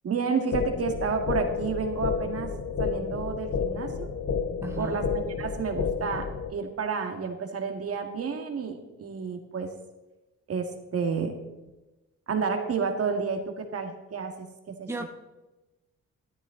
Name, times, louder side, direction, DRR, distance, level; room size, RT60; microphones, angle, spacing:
voice 1, 0.0-2.5 2.8-4.1 4.8-9.7 10.5-11.3 12.3-15.1, right 5 dB, 50° right, 5 dB, 2.0 m, -30 dB
sound 1, 0.5-6.5, left 6 dB, 55° left, 1.1 m, -31 dB
voice 2, 4.6-5.0 14.9-15.1, right 2 dB, 10° right, 4 dB, 1.0 m, -34 dB
13.0 x 12.5 x 3.9 m, 1.1 s
cardioid pair, 90°, 30 cm